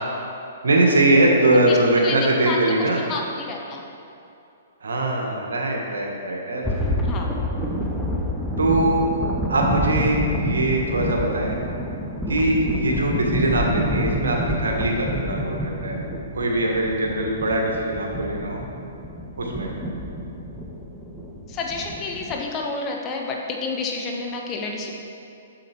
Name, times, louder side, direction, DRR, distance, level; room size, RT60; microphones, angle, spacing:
voice 1, 0.6-3.0 4.8-6.9 8.6-9.1 9.5-11.6 12.3-16.0 16.3-18.6 19.4-19.7, right 1 dB, 80° right, 0 dB, 1.5 m, -21 dB
voice 2, 2.4-3.8 7.0-7.3 21.5-24.9, left 3 dB, 25° left, 1 dB, 1.0 m, -30 dB
sound 1, 6.6-22.4, equal, ahead, 0.8 m, -28 dB
7.5 x 7.0 x 4.5 m, 2.7 s
hypercardioid pair, 130°, 0 cm